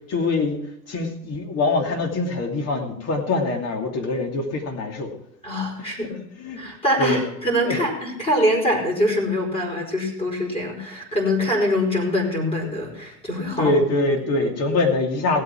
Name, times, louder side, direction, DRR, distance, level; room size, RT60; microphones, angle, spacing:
voice 1, 0.1-5.1 6.0-6.1 6.4-7.2 7.6-7.9 13.6-15.4, left 2 dB, 30° left, 3 dB, 2.7 m, -24 dB
voice 2, 5.4-6.2 6.6-13.7, left 1 dB, 10° left, 0 dB, 4.8 m, -24 dB
17.0 x 8.4 x 4.6 m, 0.77 s
hypercardioid pair, 115°, 48 cm